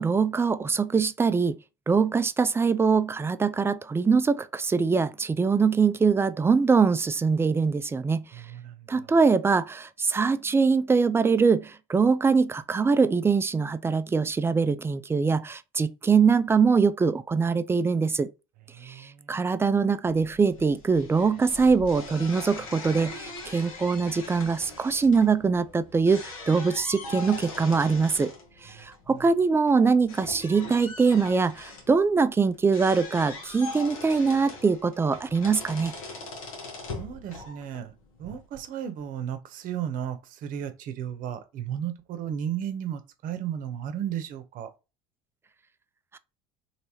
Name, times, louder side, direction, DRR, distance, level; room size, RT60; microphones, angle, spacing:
voice 1, 0.0-1.6 1.9-8.3 8.9-18.3 18.8-18.9 19.3-28.3 28.6-35.9, right 5 dB, 15° right, 0.3 m, -23 dB
voice 2, 8.3-9.1 18.7-19.5 28.7-29.2 37.0-37.9 38.2-44.7, right 9 dB, 55° right, 0.8 m, -34 dB
sound 1, 20.0-38.5, left 3 dB, 85° left, 1.1 m, -41 dB
3.3 x 2.8 x 2.8 m
hypercardioid pair, 80°, 17 cm